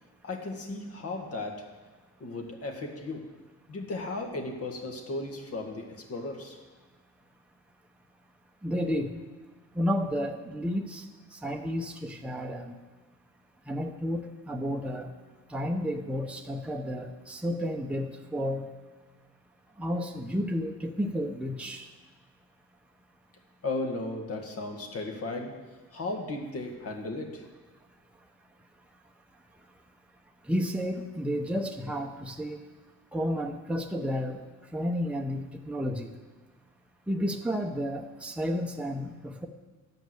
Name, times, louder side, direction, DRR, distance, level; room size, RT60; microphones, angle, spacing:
voice 1, 0.2-1.8 2.2-3.3 3.7-6.6 23.6-27.5, left 2 dB, 50° left, 2 dB, 1.9 m, -36 dB
voice 2, 8.6-9.2 9.7-11.1 11.3-12.8 13.7-15.1 15.5-18.7 19.8-21.9 30.5-32.6 33.1-34.4 34.7-36.1 37.1-39.5, equal, 5° right, 2 dB, 0.9 m, -31 dB
11.5 x 5.3 x 7.8 m, 1.3 s
cardioid pair, 90°, 30 cm